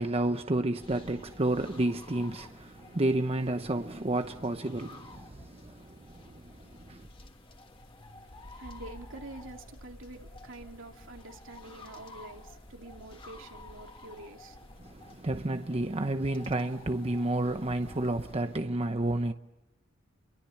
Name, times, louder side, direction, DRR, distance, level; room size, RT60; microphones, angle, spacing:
voice 1, 0.0-7.1 14.8-19.3, right 1 dB, 30° right, 0.9 m, -31 dB
sound 1, 0.8-18.6, left 2 dB, 30° left, 2.8 m, -52 dB
sound 2, 1.2-18.4, left 1 dB, 90° left, 3.1 m, -56 dB
voice 2, 8.1-14.8, right 2 dB, 75° right, 2.8 m, -47 dB
30.0 x 23.5 x 7.2 m
head